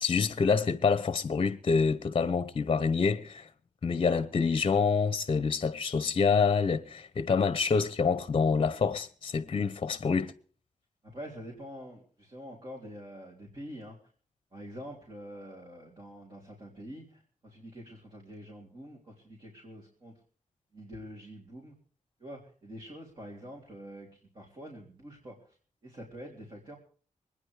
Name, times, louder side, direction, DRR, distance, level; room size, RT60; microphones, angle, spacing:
voice 1, 0.0-3.5 3.8-10.3, left 5 dB, 40° left, 0.8 m, -27 dB
voice 2, 11.0-14.0 14.5-20.1 20.7-21.7 22.2-25.6 25.8-26.8, equal, 40° right, 3.8 m, -46 dB
25.0 x 9.8 x 4.8 m
wide cardioid pair, 160°, 13 cm